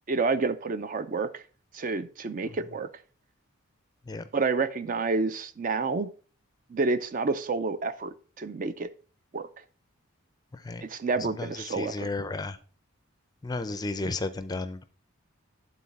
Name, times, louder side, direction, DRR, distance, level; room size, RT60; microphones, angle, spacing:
voice 1, 0.1-1.4 1.7-2.9 4.3-6.1 6.7-8.9 9.3-9.5 10.8-12.1, right 4 dB, 40° right, 12 dB, 0.4 m, -29 dB
voice 2, 11.2-12.6 13.4-14.8, left 3 dB, 20° left, 11 dB, 0.4 m, -33 dB
10.5 x 4.0 x 4.1 m, 0.40 s
head